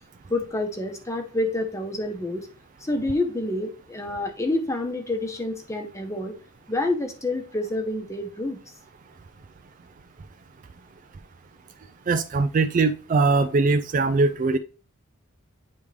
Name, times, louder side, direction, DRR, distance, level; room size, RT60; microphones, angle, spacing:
voice 1, 0.3-2.5 2.8-6.3 6.7-8.7, left 2 dB, 15° left, 4 dB, 0.9 m, -28 dB
voice 2, 12.1-14.6, right 3 dB, 35° right, 8 dB, 0.3 m, -21 dB
9.4 x 3.5 x 3.3 m, 0.36 s
head